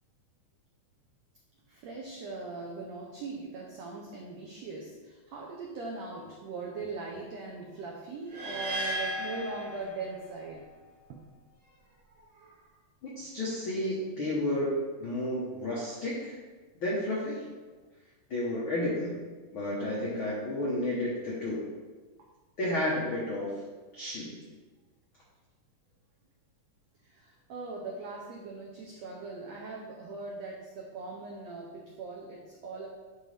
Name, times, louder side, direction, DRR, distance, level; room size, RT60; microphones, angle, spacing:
voice 1, 1.7-10.6 11.1-11.2 11.6-11.7 12.1-12.7 27.0-32.9, right 3 dB, 90° right, -2 dB, 1.5 m, -40 dB
sound 1, 8.3-10.5, equal, 55° right, 1.2 m, -35 dB
voice 2, 13.2-16.4 16.8-17.4 18.3-19.2 19.5-21.6 22.6-23.5 23.9-24.4, left 1 dB, 80° left, -5 dB, 1.1 m, -31 dB
10.5 x 3.8 x 3.3 m, 1.4 s
omnidirectional pair, 4.0 m